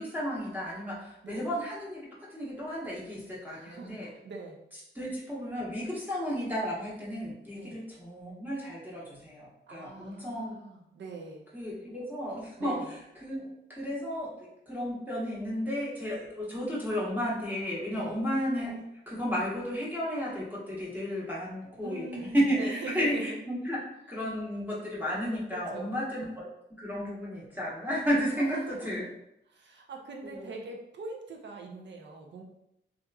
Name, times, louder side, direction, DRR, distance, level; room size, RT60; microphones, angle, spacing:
voice 1, 0.0-4.1 4.9-10.6 11.5-23.8 24.1-29.0 30.2-30.5, equal, 10° right, -6 dB, 0.9 m, -33 dB
voice 2, 3.4-4.6 7.6-7.8 9.7-11.4 12.6-12.9 17.9-18.2 21.8-23.3 25.7-25.9 28.4-29.1 29.5-32.4, right 3 dB, 60° right, 1 dB, 0.5 m, -42 dB
2.7 x 2.5 x 2.3 m, 0.81 s
cardioid pair, 75°, 20 cm